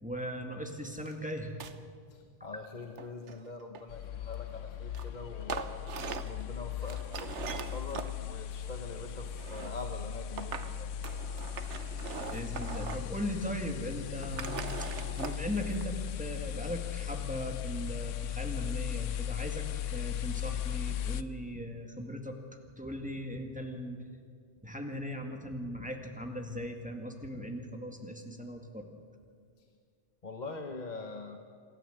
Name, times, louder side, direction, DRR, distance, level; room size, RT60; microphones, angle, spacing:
voice 1, 0.0-1.6 12.3-14.9 15.2-22.4 22.8-24.0 24.6-29.0, equal, 5° right, 3 dB, 1.9 m, -38 dB
sound 1, 1.1-1.2 1.4-1.8 2.8-4.1 4.9-5.1 5.4-6.4 6.8-8.1 9.1-9.8 10.4-10.7 11.0-13.2 13.5-13.6 14.1-15.8, right 6 dB, 70° right, 1.3 m, -41 dB
voice 2, 2.1-5.8 6.2-10.9 30.2-31.4, left 3 dB, 40° left, 4 dB, 1.2 m, -43 dB
sound 2, 3.9-21.2, left 10 dB, 80° left, 1.0 m, -38 dB
27.0 x 12.5 x 8.0 m, 2.1 s
omnidirectional pair, 1.3 m